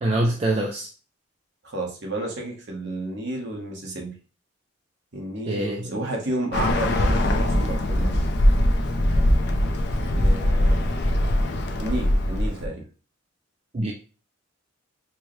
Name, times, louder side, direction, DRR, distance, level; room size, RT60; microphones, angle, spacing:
voice 1, 0.0-0.9 5.5-6.1 13.7-13.9, right 1 dB, 30° right, 1 dB, 0.4 m, -25 dB
voice 2, 1.6-4.1 5.1-8.1 10.1-10.8 11.8-12.8, right 1 dB, 55° right, 0 dB, 1.0 m, -31 dB
Bird, 6.5-12.7, left 1 dB, 55° left, 0.5 m, -21 dB
4.5 x 2.1 x 3.0 m, 0.37 s
head